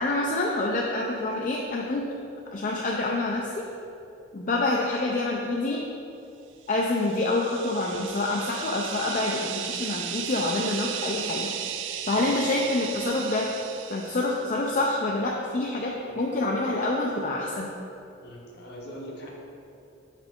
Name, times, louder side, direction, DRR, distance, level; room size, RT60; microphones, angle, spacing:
voice 1, 0.0-2.0 2.5-3.6 4.3-5.8 6.7-11.5 12.1-13.5 13.9-17.7, left 2 dB, 40° left, -2 dB, 0.4 m, -27 dB
sound 1, 6.8-14.6, right 9 dB, 85° right, 0.4 m, -35 dB
voice 2, 18.2-19.3, equal, 60° left, -2 dB, 1.1 m, -42 dB
6.3 x 4.9 x 3.6 m, 2.7 s
head